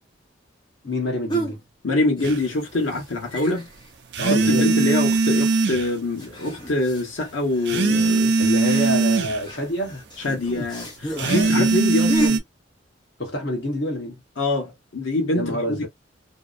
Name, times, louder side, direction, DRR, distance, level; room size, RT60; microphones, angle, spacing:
voice 1, 0.8-1.6 4.2-4.9 8.4-10.0 11.2-11.7 13.2-14.2 15.3-15.9, equal, 60° left, 1.0 m, -27 dB
sound 1, 1.3-1.6 2.1-2.7 2.9-3.0 3.3-3.9 4.4-4.9 5.2-5.3 6.2-12.3, right 1 dB, 25° left, 0.7 m, -33 dB
voice 2, 1.8-3.7 4.2-8.3 10.2-12.4 14.4-15.9, left 2 dB, 90° left, 1.0 m, -25 dB
sound 2, 2.2-2.4 4.1-5.9 7.7-9.4 11.2-12.4, right 3 dB, 60° right, 0.5 m, -20 dB
2.7 x 2.0 x 2.4 m
head